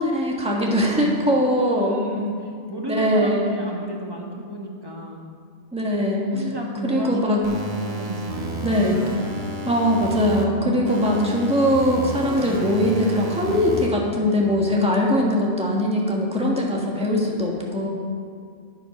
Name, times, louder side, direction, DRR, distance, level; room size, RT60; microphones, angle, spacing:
voice 1, 0.0-2.0 2.9-3.5 5.7-6.3 6.8-7.4 8.6-9.0 9.6-17.9, equal, 5° right, -2 dB, 1.6 m, -21 dB
voice 2, 0.7-5.3 6.3-7.6 7.8-9.0, right 1 dB, 20° right, 0 dB, 1.4 m, -33 dB
sound 1, 7.4-10.4 10.9-13.9, right 1 dB, 45° right, 1.5 m, -31 dB
9.6 x 9.5 x 6.0 m, 2.3 s
omnidirectional pair, 1.2 m